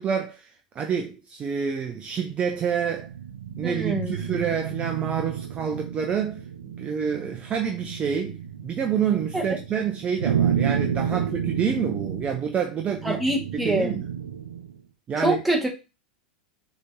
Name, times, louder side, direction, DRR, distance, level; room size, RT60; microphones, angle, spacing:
voice 1, 0.0-3.1 3.6-13.2 13.5-14.1 15.1-15.4, right 7 dB, 30° right, 0.6 m, -28 dB
sound 1, 2.1-14.8, right 8 dB, 85° right, 0.5 m, -31 dB
voice 2, 3.6-4.1 9.3-9.4 13.0-13.9 15.2-15.7, right 1 dB, 5° right, 1.6 m, -24 dB
6.3 x 3.0 x 2.7 m
hypercardioid pair, 95°, 4 cm